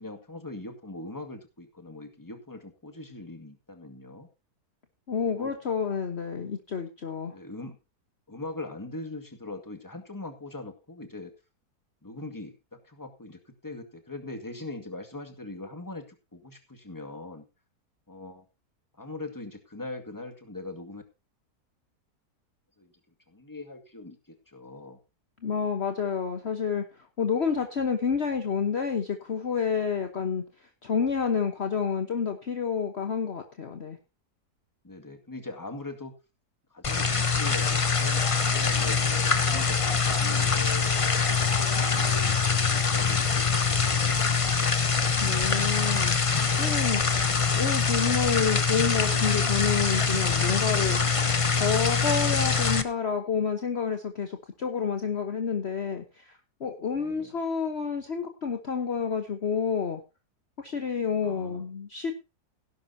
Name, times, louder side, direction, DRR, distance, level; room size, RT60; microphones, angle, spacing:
voice 1, 0.0-4.3 5.3-5.5 7.3-7.8 8.3-11.3 12.0-17.5 18.1-18.5 19.0-21.0 22.8-22.9 23.3-25.0 34.8-36.1 36.7-41.4 41.8-44.8 56.9-57.3 61.2-61.7, left 2 dB, 10° left, 6 dB, 2.0 m, -41 dB
voice 2, 5.1-7.4 25.4-26.8 27.2-34.0 45.2-47.0 47.5-51.0 51.6-60.0 60.6-62.1, left 6 dB, 45° left, 6 dB, 1.3 m, -29 dB
sound 1, 36.8-52.8, left 5 dB, 30° left, 0.7 m, -24 dB
16.5 x 11.0 x 2.8 m, 0.27 s
omnidirectional pair, 1.7 m